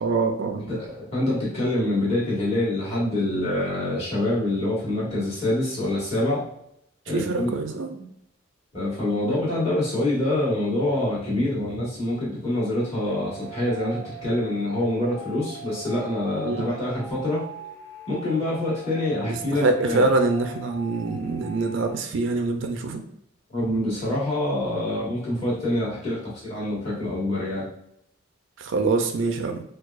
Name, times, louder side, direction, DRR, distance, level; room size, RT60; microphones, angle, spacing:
voice 1, 0.0-0.7 7.1-8.1 16.4-16.6 19.2-23.0 28.6-29.6, right 3 dB, 65° right, 5 dB, 0.4 m, -25 dB
voice 2, 0.7-6.4 7.1-7.5 8.7-17.4 18.1-20.1 23.5-27.7, left 1 dB, 30° left, -8 dB, 1.4 m, -26 dB
sound 1, 13.1-21.9, right 4 dB, 60° left, 1.4 m, -41 dB
4.5 x 2.3 x 2.4 m, 0.73 s
head